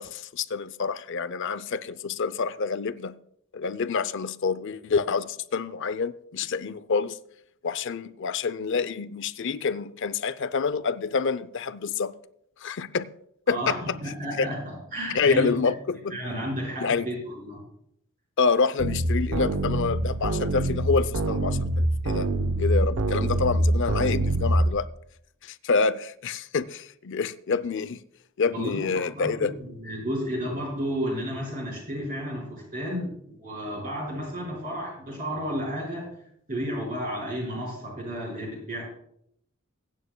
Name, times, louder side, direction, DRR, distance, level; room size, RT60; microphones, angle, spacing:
voice 1, 0.0-3.1 3.5-7.2 7.6-12.1 12.6-13.1 13.5-13.8 14.4-14.5 15.1-16.2 16.8-17.1 18.4-22.3 22.6-24.9 25.4-28.0 28.4-29.5, left 5 dB, 60° left, 0.5 m, -27 dB
voice 2, 13.5-15.6 16.1-17.6 28.5-36.1 36.5-38.8, equal, 40° right, 4.9 m, -32 dB
sound 1, 18.8-24.7, right 1 dB, 75° right, 0.8 m, -25 dB
22.0 x 9.2 x 2.2 m
head